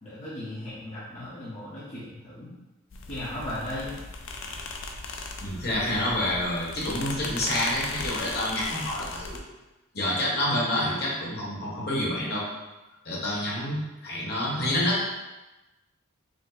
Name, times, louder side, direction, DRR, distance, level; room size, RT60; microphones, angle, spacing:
voice 1, 0.0-2.5 3.1-4.0, left 1 dB, 35° left, -9 dB, 0.7 m, -36 dB
sound 1, 2.9-9.4, left 3 dB, 65° left, 0.5 m, -37 dB
voice 2, 5.4-9.4 9.9-12.4 13.0-15.0, left 1 dB, 50° left, -5 dB, 1.2 m, -28 dB
5.1 x 2.0 x 4.0 m, 1.1 s
head